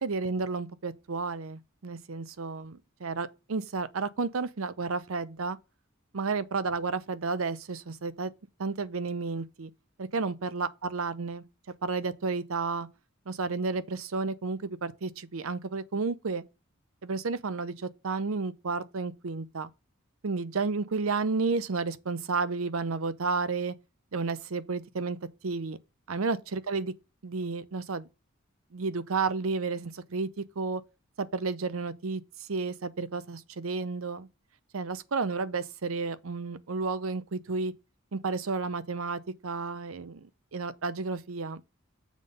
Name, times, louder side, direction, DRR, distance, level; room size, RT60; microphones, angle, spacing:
voice 1, 0.0-5.6 6.1-8.3 8.6-9.7 10.0-11.4 11.8-12.9 13.3-16.4 17.0-19.7 20.2-23.7 24.1-25.2 25.4-25.8 26.1-26.9 27.2-28.1 28.7-30.8 31.2-32.2 32.5-34.3 34.7-37.7 38.1-41.6, right 4 dB, 75° right, 0.7 m, -32 dB
7.3 x 3.8 x 6.5 m
head